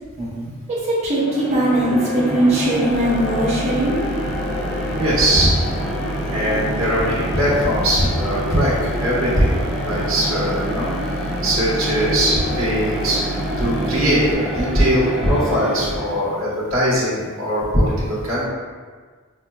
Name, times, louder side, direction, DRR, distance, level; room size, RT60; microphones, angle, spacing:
voice 1, 0.2-0.5 5.0-5.5 6.3-8.7 9.0-9.5 9.8-10.9 11.4-13.2 13.6-18.5, equal, 75° right, -8 dB, 1.2 m, -20 dB
voice 2, 0.7-4.0 15.8-15.9, right 1 dB, 35° right, -9 dB, 1.0 m, -20 dB
sound 1, 1.1-16.4, equal, ahead, 0.5 m, -27 dB
sound 2, 2.9-14.3, right 1 dB, 85° left, 0.3 m, -30 dB
5.8 x 2.1 x 2.3 m, 1.5 s
head